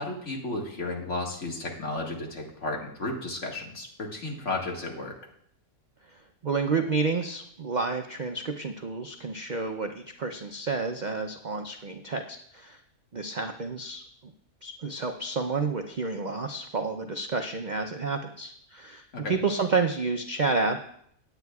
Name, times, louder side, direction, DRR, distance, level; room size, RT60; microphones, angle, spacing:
voice 1, 0.0-5.1 19.1-19.4, left 2 dB, 50° left, -1 dB, 2.1 m, -33 dB
voice 2, 6.1-12.8 13.1-14.3 14.6-20.8, right 4 dB, 55° right, 5 dB, 0.5 m, -30 dB
18.5 x 9.1 x 2.4 m, 0.68 s
omnidirectional pair, 1.6 m